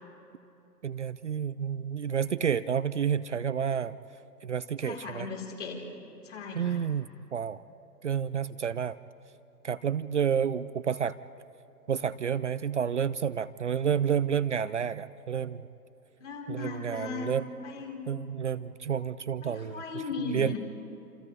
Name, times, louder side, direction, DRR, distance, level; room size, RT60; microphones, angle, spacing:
voice 1, 0.8-4.0 4.4-5.3 6.5-7.1 7.3-7.6 8.0-9.0 9.6-11.2 11.9-15.7 16.5-17.5 18.1-19.8 20.3-20.6, right 8 dB, 50° right, 15 dB, 0.5 m, -30 dB
voice 2, 4.8-5.8 6.2-6.8 16.2-17.3 17.6-18.0 19.4-20.6, left 5 dB, 50° left, -1 dB, 4.3 m, -37 dB
28.0 x 27.5 x 3.3 m, 2.9 s
figure-of-eight pair, 125°, 47 cm